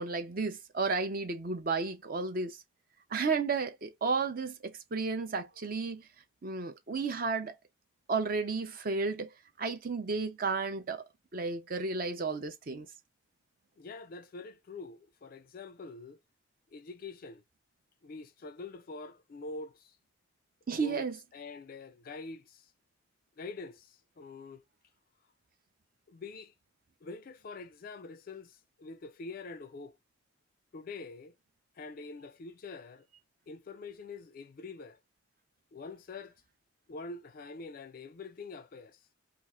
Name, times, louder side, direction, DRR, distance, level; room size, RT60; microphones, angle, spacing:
voice 1, 0.0-2.6 3.1-6.1 6.4-7.5 8.1-9.3 9.6-11.0 11.3-12.9 20.7-21.2, right 4 dB, 45° right, 0.5 m, -32 dB
voice 2, 13.8-16.2 16.7-17.4 18.0-20.0 20.8-21.1 21.3-22.7 23.4-24.6 26.1-26.5 27.0-30.0 30.7-31.3 31.8-33.1 33.5-35.0 35.7-36.3 36.9-39.1, left 3 dB, 45° left, 0.3 m, -45 dB
2.9 x 2.4 x 3.6 m
head